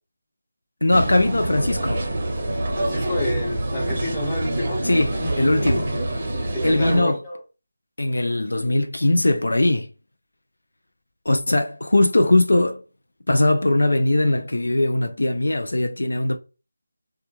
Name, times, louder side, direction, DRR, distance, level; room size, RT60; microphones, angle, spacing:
voice 1, 0.8-2.0 4.8-5.9 6.6-7.2 8.0-9.9 11.3-12.8 13.3-16.4, left 1 dB, 80° left, 0.4 m, -20 dB
sound 1, 0.9-7.0, right 1 dB, 30° right, 0.6 m, -26 dB
voice 2, 2.7-4.8 6.5-7.4, left 1 dB, 10° left, 1.0 m, -29 dB
2.3 x 2.1 x 2.9 m
figure-of-eight pair, 165°, 0 cm